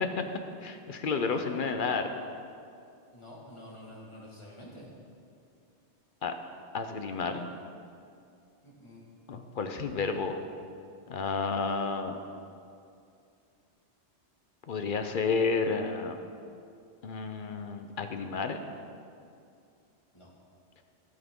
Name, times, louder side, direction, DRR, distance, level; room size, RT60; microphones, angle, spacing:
voice 1, 0.6-2.1 6.2-6.4 6.7-7.5 9.3-10.4 11.1-12.2 14.7-16.2 17.0-18.6, left 4 dB, 55° left, 6 dB, 0.7 m, -31 dB
voice 2, 3.1-4.9 8.6-9.0 20.1-20.3, left 1 dB, 25° left, -5 dB, 1.9 m, -48 dB
16.5 x 5.9 x 3.6 m, 2.5 s
omnidirectional pair, 1.2 m